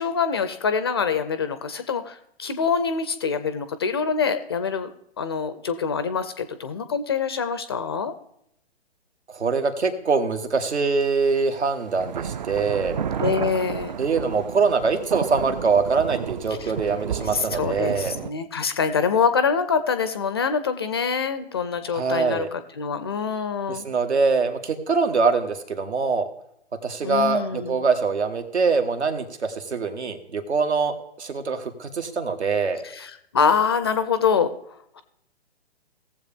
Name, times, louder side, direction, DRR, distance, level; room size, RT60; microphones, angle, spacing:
voice 1, 0.0-8.1 13.2-13.9 16.6-16.7 17.3-23.8 27.0-27.9 32.8-34.5, left 6 dB, 25° left, 11 dB, 0.4 m, -25 dB
voice 2, 9.3-13.0 14.0-18.1 21.9-22.5 23.7-26.3 26.8-32.8, right 4 dB, 80° right, 8 dB, 1.5 m, -23 dB
sound 1, 11.0-11.1 11.9-18.3, right 8 dB, 45° right, 0.4 m, -32 dB
17.5 x 7.4 x 3.4 m, 0.76 s
hypercardioid pair, 135°, 33 cm